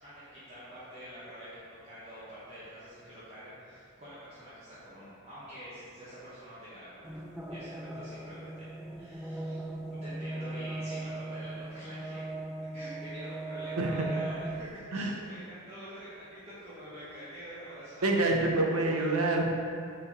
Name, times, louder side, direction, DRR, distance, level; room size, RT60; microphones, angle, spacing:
voice 1, 0.0-9.6 9.9-12.2 12.7-18.3 18.7-19.1, equal, 30° right, -12 dB, 1.2 m, -47 dB
sound 1, 7.0-14.8, right 2 dB, 5° right, 0.3 m, -39 dB
voice 2, 18.0-19.4, right 2 dB, 90° right, 0 dB, 0.8 m, -27 dB
5.3 x 4.3 x 4.1 m, 2.4 s
head